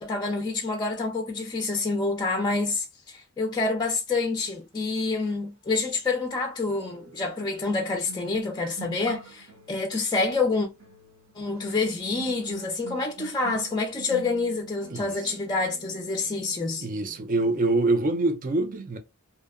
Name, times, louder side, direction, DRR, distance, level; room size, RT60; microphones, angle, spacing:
voice 1, 0.0-10.7 11.4-16.9, left 3 dB, 20° left, 0.4 m, -27 dB
sound 1, 5.3-5.4 6.7-17.8 18.0-18.3, right 4 dB, 65° right, 0.8 m, -47 dB
voice 2, 16.8-19.0, right 2 dB, 40° right, 0.5 m, -25 dB
2.7 x 2.1 x 2.3 m
head